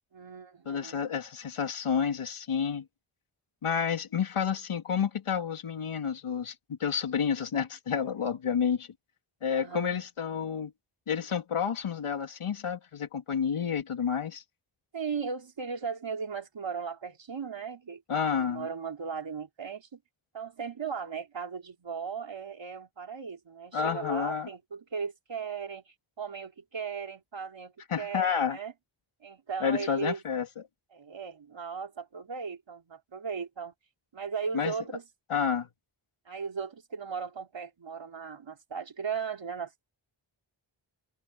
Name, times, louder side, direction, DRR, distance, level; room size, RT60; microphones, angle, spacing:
voice 1, 0.1-1.1 9.5-10.0 14.9-20.0 20.3-28.7 29.2-30.2 30.9-33.7 34.1-35.0 36.3-39.7, right 6 dB, 65° right, 3.6 m, -37 dB
voice 2, 0.7-2.8 3.6-8.9 9.4-10.7 11.1-14.4 18.1-18.7 23.7-24.5 27.9-28.6 29.6-30.5 34.5-34.7 35.3-35.7, left 7 dB, 85° left, 3.0 m, -30 dB
wide cardioid pair, 70°, 49 cm